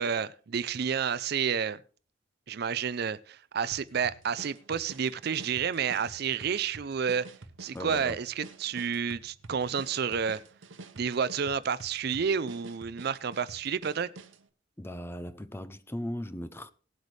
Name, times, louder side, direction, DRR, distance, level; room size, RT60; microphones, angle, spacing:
voice 1, 0.0-1.8 2.5-7.3 7.6-10.4 11.0-14.1, right 7 dB, 55° right, 0.4 m, -30 dB
sound 1, 3.7-14.5, right 2 dB, 90° right, 1.0 m, -49 dB
voice 2, 7.7-8.2 9.5-9.7 14.8-16.7, left 1 dB, 10° left, 0.5 m, -38 dB
18.5 x 8.1 x 3.2 m
head